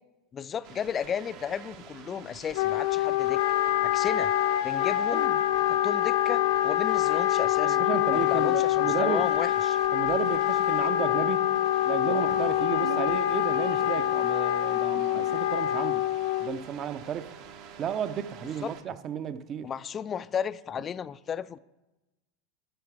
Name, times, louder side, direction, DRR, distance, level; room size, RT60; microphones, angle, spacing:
voice 1, 0.3-3.4 3.8-4.3 4.6-5.3 5.7-7.8 8.1-9.8 11.1-11.2 18.4-18.7 19.6-21.6, left 8 dB, 30° left, 0.4 m, -34 dB
sound 1, 0.6-18.8, right 7 dB, 55° right, 1.1 m, -47 dB
Wind instrument woodwind instrument, 2.5-16.6, left 13 dB, 70° left, 0.7 m, -25 dB
sound 2, 2.5-15.4, right 6 dB, 75° right, 0.8 m, -45 dB
voice 2, 7.6-9.2 9.9-11.5 11.8-16.1 16.4-17.3 17.8-19.7, right 9 dB, 40° right, 0.7 m, -33 dB
13.0 x 6.7 x 4.7 m
hypercardioid pair, 95°, 0 cm